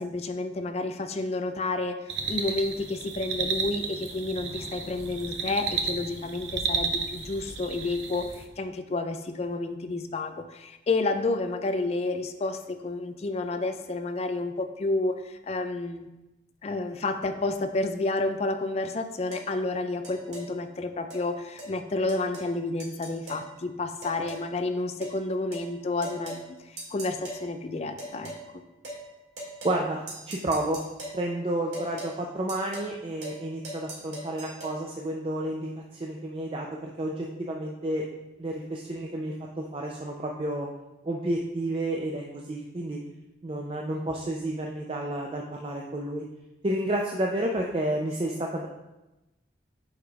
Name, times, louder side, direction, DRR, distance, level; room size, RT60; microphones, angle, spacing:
voice 1, 0.0-16.1 16.6-28.6, left 2 dB, 35° left, 8 dB, 0.3 m, -30 dB
sound 1, 2.1-8.5, right 5 dB, 85° right, 0.7 m, -33 dB
sound 2, 19.3-19.5 20.0-20.5 21.1-21.2 21.6-21.7 22.1-22.5 22.8-23.5 24.0-24.5 25.0-25.2 25.5-25.7 26.0-26.4 26.8-27.4 28.0-28.4 28.8-29.0 29.4-29.8 30.1-31.2 31.7-32.1 32.5-32.9 33.2-33.4 33.6-34.7, right 1 dB, 65° right, 2.0 m, -39 dB
voice 2, 29.6-30.0 30.3-30.8 31.1-38.1 38.4-40.7 41.0-43.0 43.4-46.2 46.6-48.7, right 1 dB, 30° right, 0 dB, 0.4 m, -31 dB
8.7 x 4.9 x 2.3 m, 1.0 s
head